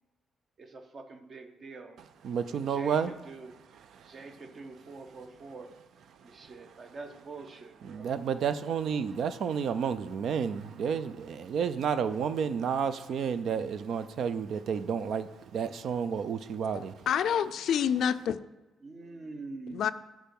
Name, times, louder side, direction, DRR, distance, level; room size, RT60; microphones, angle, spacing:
voice 1, 0.6-2.0 2.5-3.5 4.1-5.8 6.2-8.1 18.8-19.9, right 3 dB, 40° right, 0.8 m, -45 dB
voice 2, 2.2-3.1 4.0-4.1 7.9-16.9, right 7 dB, 65° right, 0.4 m, -31 dB
voice 3, 16.7-18.4 19.7-19.9, left 8 dB, 70° left, 0.4 m, -28 dB
8.8 x 4.7 x 5.3 m
cardioid pair, 115°, 0 cm